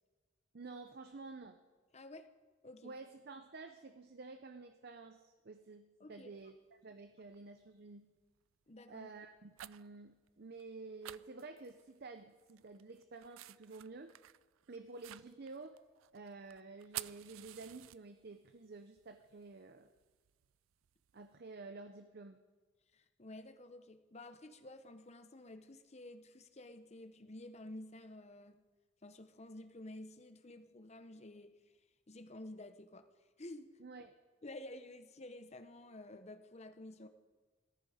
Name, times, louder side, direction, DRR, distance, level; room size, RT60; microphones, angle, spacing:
voice 1, 0.5-1.6 2.8-8.1 8.9-14.1 14.7-15.8 16.1-19.9 21.1-22.4 33.8-34.1, right 3 dB, 50° right, 9 dB, 0.6 m, -51 dB
voice 2, 1.9-2.3 2.6-2.9 6.0-6.3 8.7-9.1 22.9-28.6 29.0-31.5 32.1-33.1 33.4-33.7 34.4-37.1, left 1 dB, 35° left, 8 dB, 0.9 m, -51 dB
sound 1, 6.4-6.5 7.3-7.6 8.1-8.4 9.2-10.0 10.3-10.4 10.6-10.7 11.0-12.1 12.4-18.4 18.7-21.2, right 15 dB, 90° right, 0.4 m, -51 dB
18.0 x 14.0 x 5.0 m, 1.4 s
head